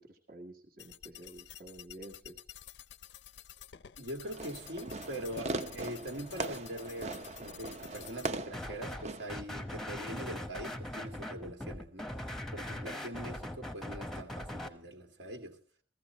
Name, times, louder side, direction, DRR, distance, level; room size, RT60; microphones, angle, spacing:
voice 1, 0.0-2.4, right 1 dB, 55° right, 1.7 m, -50 dB
sound 1, 0.8-8.3, left 10 dB, 75° left, 0.6 m, -51 dB
voice 2, 4.0-12.1 12.5-15.6, right 1 dB, 75° right, 2.1 m, -43 dB
Fireworks, 4.2-9.4, right 2 dB, 40° right, 0.8 m, -40 dB
sound 2, 8.5-9.0 9.3-14.7, left 1 dB, ahead, 0.9 m, -40 dB
15.0 x 15.0 x 4.3 m
head